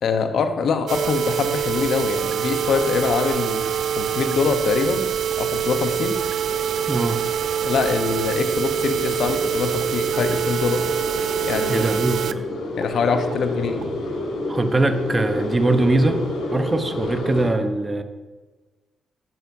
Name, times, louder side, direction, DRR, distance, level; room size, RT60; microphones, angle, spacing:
voice 1, 0.0-3.6 4.0-5.1 5.4-6.2 7.6-10.8 11.4-11.9 12.8-13.8, left 5 dB, 70° left, 7 dB, 1.0 m, -24 dB
sound 1, 0.9-12.3 12.8-12.9 13.3-13.4 13.8-13.9, right 9 dB, 70° right, 0.4 m, -25 dB
sound 2, 2.5-17.5, left 2 dB, 85° left, 2.5 m, -31 dB
voice 2, 6.9-7.2 11.7-12.5 14.5-16.2 16.5-18.0, right 2 dB, 30° right, 8 dB, 0.9 m, -21 dB
11.0 x 10.5 x 2.8 m, 1.3 s
supercardioid pair, 50°, 0 cm